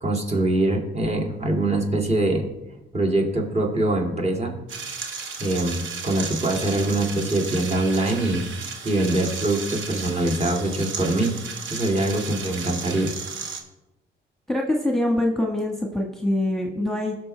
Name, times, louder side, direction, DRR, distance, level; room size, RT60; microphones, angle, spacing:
voice 1, 0.0-2.5 2.9-4.5 5.4-11.4 11.7-13.1, right 1 dB, 35° right, 0 dB, 2.5 m, -23 dB
sound 1, 4.7-13.6, right 5 dB, 80° right, 1.7 m, -34 dB
voice 2, 14.5-17.1, left 1 dB, ahead, 1 dB, 1.5 m, -24 dB
16.0 x 6.6 x 3.3 m, 0.98 s
cardioid pair, 90°, 20 cm